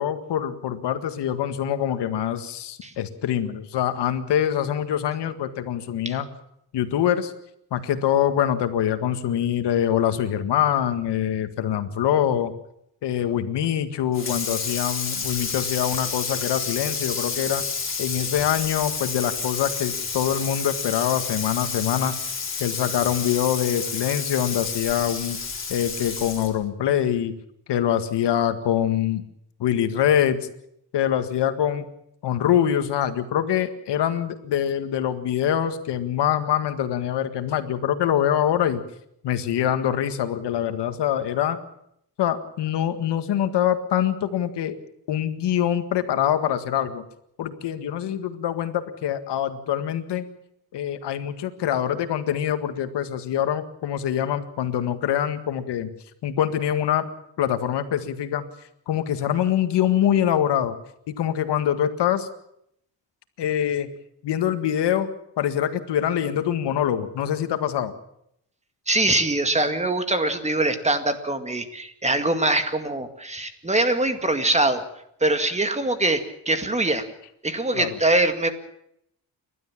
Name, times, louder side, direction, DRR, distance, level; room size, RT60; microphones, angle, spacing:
voice 1, 0.0-6.3 6.7-7.3 7.7-12.5 13.0-17.6 18.0-22.1 22.6-25.4 25.7-27.3 27.7-29.2 29.6-30.4 30.9-31.8 32.2-38.8 39.2-41.6 42.2-44.7 45.1-47.0 47.4-50.2 50.7-55.9 56.2-57.1 57.4-58.4 58.9-60.8 61.1-62.3 63.4-63.9 64.2-65.1 65.4-67.9 77.7-78.0, left 10 dB, 80° left, 9 dB, 1.9 m, -24 dB
Water tap faucet / Sink (filling or washing), 14.1-26.6, left 5 dB, 30° left, 4.1 m, -30 dB
voice 2, 68.9-74.8 75.2-77.0 77.4-78.5, right 2 dB, 15° right, 8 dB, 2.1 m, -23 dB
30.0 x 12.5 x 7.4 m, 0.75 s
cardioid pair, 120°, 41 cm